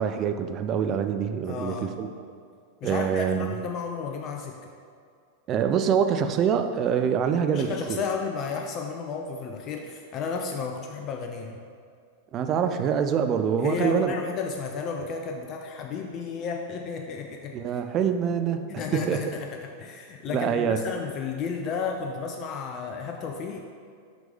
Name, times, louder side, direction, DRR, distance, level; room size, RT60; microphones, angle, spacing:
voice 1, 0.0-2.1 2.8-3.5 5.5-8.0 12.3-14.1 17.5-18.7 18.9-19.2 20.3-20.8, right 7 dB, 35° right, 8 dB, 0.3 m, -25 dB
voice 2, 1.5-2.0 2.8-4.7 7.5-11.6 13.6-17.6 18.7-23.6, left 5 dB, 35° left, 3 dB, 0.4 m, -33 dB
6.0 x 5.1 x 3.4 m, 2.2 s
figure-of-eight pair, 90°, 0 cm